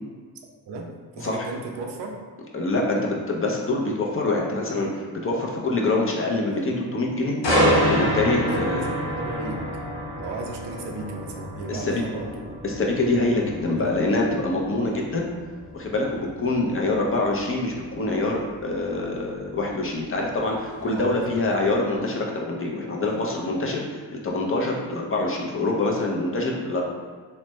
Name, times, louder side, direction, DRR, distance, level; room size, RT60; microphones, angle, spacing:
voice 1, 0.7-2.2 8.5-9.7 10.2-12.6 13.6-14.0 20.9-21.4, right 3 dB, 85° right, 1 dB, 0.6 m, -35 dB
voice 2, 2.5-7.4 7.9-8.9 11.7-12.0 12.6-15.3 15.7-26.8, left 2 dB, 35° left, -1 dB, 0.6 m, -25 dB
sound 1, 7.4-21.3 21.7-22.0, equal, 85° left, 0.9 m, -28 dB
3.2 x 2.1 x 3.0 m, 1.5 s
cardioid pair, 80°, 40 cm